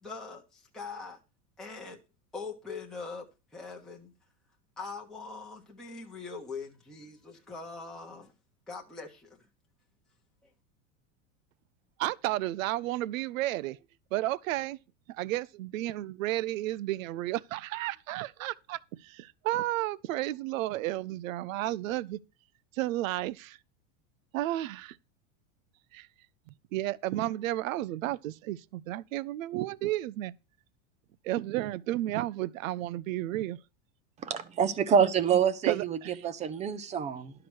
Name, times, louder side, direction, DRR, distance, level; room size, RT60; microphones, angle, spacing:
voice 1, 0.0-1.2 1.6-2.0 2.3-4.1 4.8-8.3 8.7-9.4, left 4 dB, ahead, 0.9 m, -42 dB
voice 2, 12.0-13.8 14.1-14.8 15.1-22.2 22.7-23.6 24.3-25.0 25.9-26.1 26.7-30.3 31.2-33.6 35.6-36.1, right 15 dB, 80° right, 0.7 m, -32 dB
voice 3, 34.2-37.3, right 7 dB, 15° right, 0.6 m, -27 dB
12.0 x 4.9 x 6.2 m
supercardioid pair, 160°, 39 cm